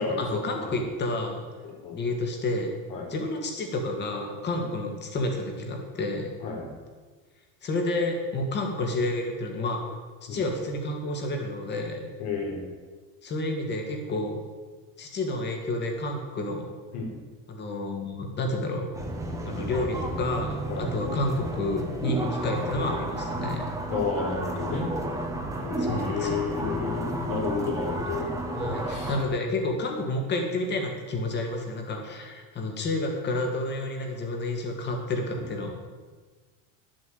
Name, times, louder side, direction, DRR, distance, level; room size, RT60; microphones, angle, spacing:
voice 1, 0.0-1.4 1.9-2.7 3.1-6.3 7.6-9.9 10.3-12.1 13.2-14.4 15.0-16.7 17.5-18.9 19.5-23.7 25.8-26.5 28.6-35.7, left 2 dB, 30° left, 2 dB, 2.2 m, -30 dB
voice 2, 12.2-12.7 16.9-17.1 20.7-20.9 23.9-24.9 25.6-28.3 28.9-29.1, left 5 dB, 75° left, 0 dB, 3.9 m, -31 dB
sound 1, 18.9-29.2, right 1 dB, 10° right, 1.3 m, -32 dB
11.0 x 7.5 x 8.0 m, 1.4 s
cardioid pair, 155°, 35 cm